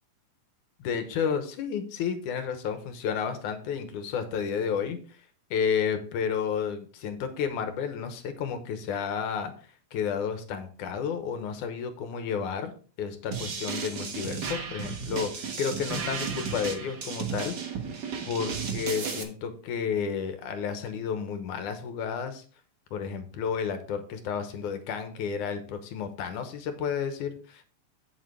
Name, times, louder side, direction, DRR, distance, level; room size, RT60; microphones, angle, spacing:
voice 1, 0.8-5.2 5.5-9.5 9.9-12.7 13.0-17.6 18.3-22.4 22.9-27.6, left 7 dB, 75° left, 8 dB, 2.4 m, -31 dB
sound 1, 13.3-19.2, right 6 dB, 65° right, 1.0 m, -34 dB
8.7 x 7.7 x 3.4 m, 0.39 s
omnidirectional pair, 3.7 m